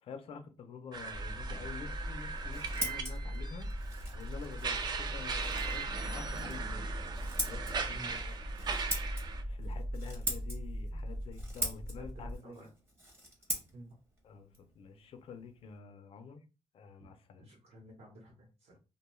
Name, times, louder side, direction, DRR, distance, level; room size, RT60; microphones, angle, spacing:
voice 1, 0.0-3.7 4.1-6.9 7.4-8.9 9.5-12.6 14.2-16.4 16.7-17.5, left 6 dB, 55° left, 0.4 m, -48 dB
sound 1, 0.9-9.4, right 5 dB, 40° right, 0.3 m, -39 dB
sound 2, 1.1-12.4, equal, 90° right, 0.7 m, -40 dB
Scissors, 2.2-15.8, right 1 dB, 20° right, 0.7 m, -43 dB
voice 2, 12.0-12.7 13.7-13.9 17.4-18.7, right 1 dB, 65° right, 0.9 m, -51 dB
2.6 x 2.2 x 3.0 m
wide cardioid pair, 170°, 12 cm